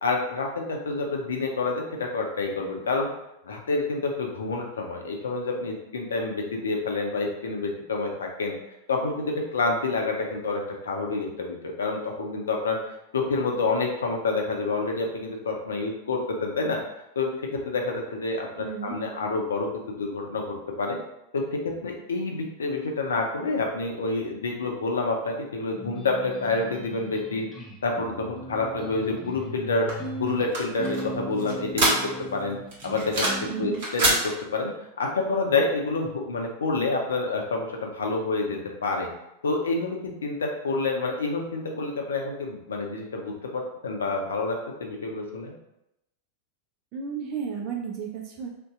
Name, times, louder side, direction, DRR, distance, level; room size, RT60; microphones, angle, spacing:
voice 1, 0.0-3.1 3.4-8.5 8.9-16.8 17.2-21.0 21.3-27.5 27.8-31.9 32.3-32.6 32.8-33.3 33.6-34.7 35.0-39.1 39.4-45.5, left 3 dB, 70° left, 1 dB, 0.5 m, -28 dB
voice 2, 18.6-19.0 33.5-33.8 46.9-48.5, right 7 dB, 40° right, 0 dB, 0.5 m, -33 dB
sound 1, 25.8-33.7, right 1 dB, 10° left, 0.6 m, -38 dB
sound 2, 29.9-32.4 32.7-33.5 33.7-34.2, right 2 dB, 55° right, 1.2 m, -25 dB
2.7 x 2.2 x 3.5 m, 0.85 s
figure-of-eight pair, 90°, 0 cm